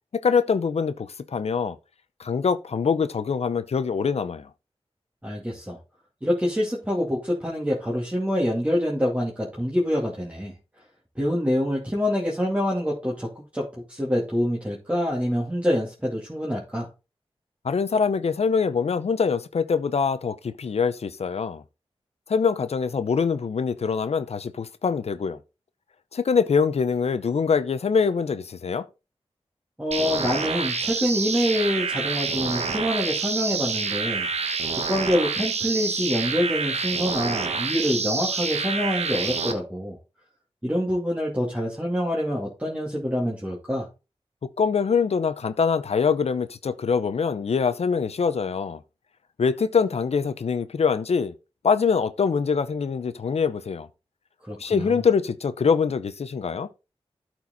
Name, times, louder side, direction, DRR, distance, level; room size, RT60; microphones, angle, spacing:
voice 1, 0.1-1.8 2.2-4.5 17.6-21.6 22.3-25.4 26.1-28.8 44.6-48.8 49.4-51.3 51.6-53.9 54.6-56.7, left 5 dB, 80° left, 0.7 m, -24 dB
voice 2, 5.2-5.8 6.2-10.5 11.2-13.3 13.5-16.9 29.8-34.3 34.7-39.9 40.6-43.9 54.5-55.0, equal, 10° right, 2.5 m, -26 dB
sound 1, 29.9-39.5, right 4 dB, 85° right, 1.2 m, -27 dB
13.0 x 4.6 x 3.9 m
wide cardioid pair, 90°, 11 cm